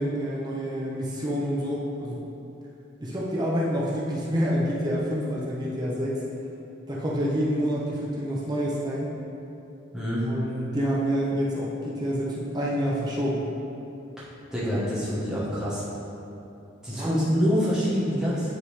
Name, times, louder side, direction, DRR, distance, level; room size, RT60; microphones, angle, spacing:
voice 1, 0.0-2.2 3.0-6.2 6.9-9.1 10.2-13.5 16.9-17.2, equal, 20° right, -5 dB, 0.6 m, -27 dB
voice 2, 9.9-10.3 14.5-15.8 16.8-18.5, equal, 5° right, -10 dB, 1.1 m, -26 dB
9.5 x 3.6 x 3.2 m, 2.9 s
head